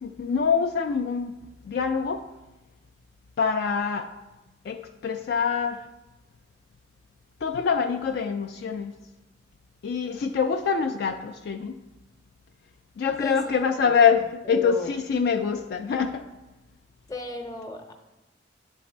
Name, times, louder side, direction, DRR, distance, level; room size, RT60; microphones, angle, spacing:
voice 1, 0.0-1.3 1.7-2.2 3.4-4.1 4.7-5.8 7.4-8.9 9.8-11.8 13.0-16.3, left 6 dB, 55° left, 6 dB, 0.3 m, -25 dB
voice 2, 13.2-13.9 14.4-14.9 17.1-17.9, left 2 dB, 20° left, 4 dB, 0.7 m, -36 dB
10.0 x 4.1 x 4.3 m, 1.1 s
head